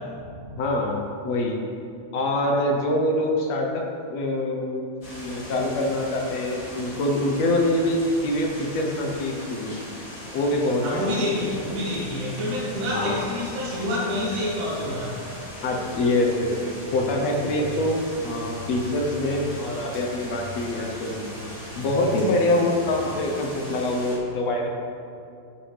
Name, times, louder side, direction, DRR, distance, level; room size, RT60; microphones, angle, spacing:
voice 1, 0.6-1.6 2.1-3.8 4.1-4.8 5.2-9.9 10.3-11.2 12.9-13.2 15.6-21.3 21.8-24.7, left 1 dB, 65° left, 1 dB, 1.9 m, -25 dB
sound 1, 5.0-24.2, left 1 dB, 40° left, 3.1 m, -38 dB
voice 2, 10.8-15.2, left 1 dB, 70° right, -7 dB, 3.2 m, -27 dB
12.0 x 9.7 x 3.4 m, 2.5 s
omnidirectional pair, 3.7 m